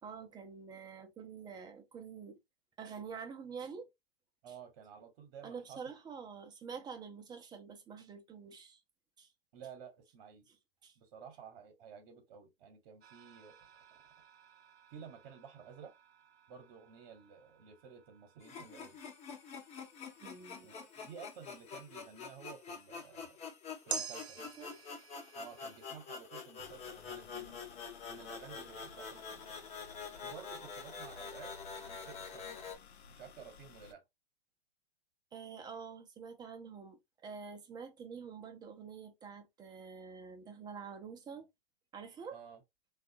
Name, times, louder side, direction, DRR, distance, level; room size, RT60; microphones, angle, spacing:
voice 1, 0.0-2.4 2.8-3.9 4.5-4.6 5.4-8.8 9.2-9.3 10.5-10.6 10.8-11.0 20.2-20.7 24.4-24.8 35.3-41.5 41.9-42.4, right 6 dB, 15° right, 0.5 m, -47 dB
voice 2, 4.4-5.8 9.5-10.5 11.0-13.7 14.9-15.9 16.5-19.0 20.6-23.4 23.9-24.4 25.3-27.6 28.1-29.6 30.0-31.5 31.9-32.7 33.1-34.0 42.3-42.6, right 7 dB, 50° right, 1.0 m, -53 dB
sound 1, 13.0-22.4 23.9-26.0, right 7 dB, 85° right, 0.5 m, -50 dB
sound 2, 18.4-32.8, left 5 dB, 20° left, 0.7 m, -47 dB
sound 3, 26.6-33.9, left 6 dB, 85° left, 0.6 m, -57 dB
3.3 x 2.4 x 2.6 m
hypercardioid pair, 115°, 31 cm